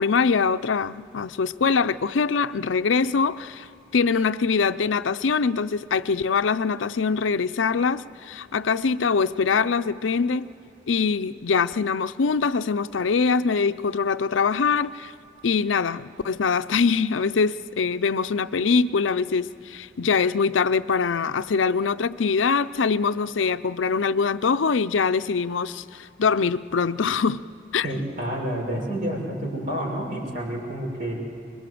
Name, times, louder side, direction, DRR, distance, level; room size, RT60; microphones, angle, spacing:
voice 1, 0.0-3.7 3.9-10.5 10.9-15.1 15.4-27.4 27.7-27.9, left 5 dB, 85° left, 0.5 m, -23 dB
voice 2, 27.8-31.1, right 1 dB, 45° right, 5.8 m, -29 dB
25.5 x 22.0 x 7.7 m
head